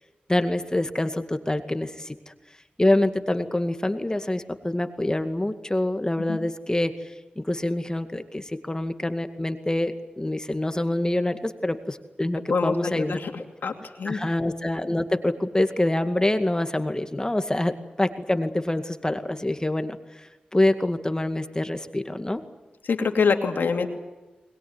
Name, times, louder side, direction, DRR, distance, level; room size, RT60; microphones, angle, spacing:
voice 1, 0.3-2.2 2.8-13.2 14.0-22.4, left 1 dB, 20° left, 8 dB, 2.1 m, -26 dB
voice 2, 12.5-13.3 13.6-14.2 22.9-23.9, left 5 dB, 85° left, 5 dB, 2.6 m, -25 dB
22.0 x 21.0 x 9.7 m, 1.1 s
cardioid pair, 45°, 3 cm